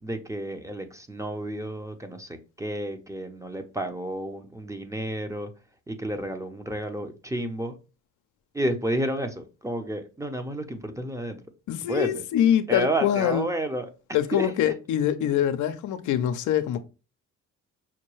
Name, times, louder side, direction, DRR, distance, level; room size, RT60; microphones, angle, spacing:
voice 1, 0.0-5.5 5.9-7.8 8.5-11.4 11.9-12.2 12.7-13.9 14.3-14.5, right 1 dB, 10° right, 0.7 m, -31 dB
voice 2, 11.7-13.5 14.1-16.8, left 10 dB, 75° left, 0.6 m, -24 dB
5.8 x 2.2 x 3.1 m
cardioid pair, 90°, 30 cm